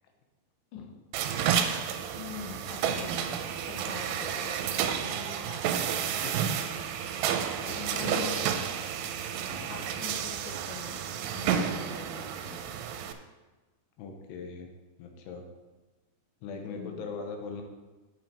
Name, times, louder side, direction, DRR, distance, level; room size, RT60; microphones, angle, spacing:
sound 1, 1.1-13.1, right 8 dB, 85° right, 2.8 m, -31 dB
voice 1, 2.2-6.4 7.7-8.6 9.7-12.6 16.5-17.1, left 7 dB, 65° left, 1 dB, 2.4 m, -44 dB
voice 2, 7.6-9.1 9.5-9.8 14.0-14.7 15.0-15.4 16.4-17.6, left 5 dB, 90° left, 3 dB, 3.1 m, -41 dB
8.2 x 8.0 x 4.5 m, 1.2 s
omnidirectional pair, 4.8 m